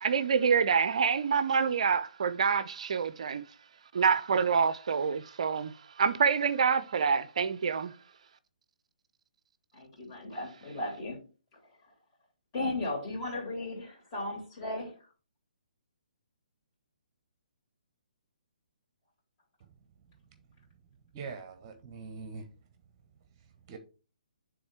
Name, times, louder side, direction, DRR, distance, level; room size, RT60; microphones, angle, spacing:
voice 1, 0.0-3.4 3.9-7.9, right 6 dB, 50° right, 0.4 m, -27 dB
voice 2, 9.7-11.2 12.5-14.9, left 2 dB, 30° left, 3.3 m, -36 dB
voice 3, 21.1-22.4 23.7-23.8, right 5 dB, 30° right, 0.8 m, -42 dB
9.5 x 3.7 x 3.4 m
figure-of-eight pair, 135°, 4 cm